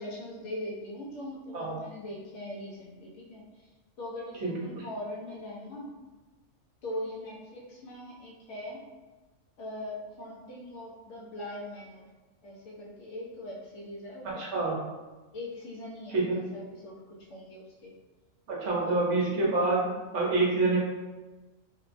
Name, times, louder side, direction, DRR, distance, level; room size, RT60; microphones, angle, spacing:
voice 1, 0.0-3.7 4.0-5.9 6.8-8.8 9.6-12.0 12.4-14.8 15.3-17.9 18.8-19.0, left 1 dB, 65° left, -3 dB, 0.9 m, -41 dB
voice 2, 4.4-4.8 14.4-14.8 16.1-16.4 18.5-20.8, right 3 dB, 65° right, -4 dB, 1.0 m, -27 dB
3.0 x 2.2 x 2.4 m, 1.2 s
omnidirectional pair, 1.4 m